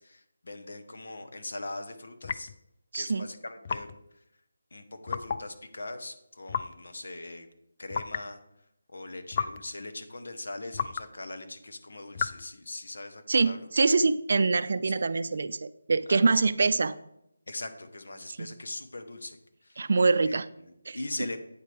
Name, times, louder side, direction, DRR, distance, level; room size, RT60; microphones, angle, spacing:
voice 1, 0.0-2.5 2.9-3.9 4.1-4.2 4.7-7.5 7.8-8.4 8.9-13.7 16.1-16.3 17.5-19.9 20.2-21.4, left 2 dB, 70° left, 7 dB, 1.2 m, -41 dB
sound 1, 2.2-2.6 3.6-4.0 5.1-5.5 6.5-6.8 7.9-8.3 9.3-9.7 10.7-11.1 12.1-12.5, left 6 dB, 30° left, 0.3 m, -33 dB
voice 2, 2.9-3.3 13.3-17.0 18.4-18.5 19.8-20.5 20.9-21.0, right 4 dB, 55° right, 14 dB, 0.4 m, -24 dB
8.7 x 7.6 x 3.4 m, 0.79 s
figure-of-eight pair, 170°, 0 cm